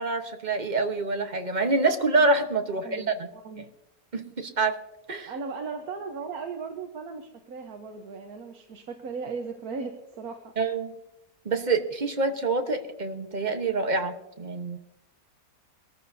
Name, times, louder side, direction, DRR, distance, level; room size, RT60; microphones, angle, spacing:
voice 1, 0.0-3.3 4.1-4.8 5.1-5.3 10.6-10.9 11.4-14.8, right 3 dB, 30° right, 6 dB, 1.0 m, -26 dB
voice 2, 2.8-3.7 5.3-10.5, right 5 dB, 65° right, 4 dB, 1.5 m, -37 dB
22.5 x 14.0 x 2.7 m, 0.90 s
omnidirectional pair, 1.8 m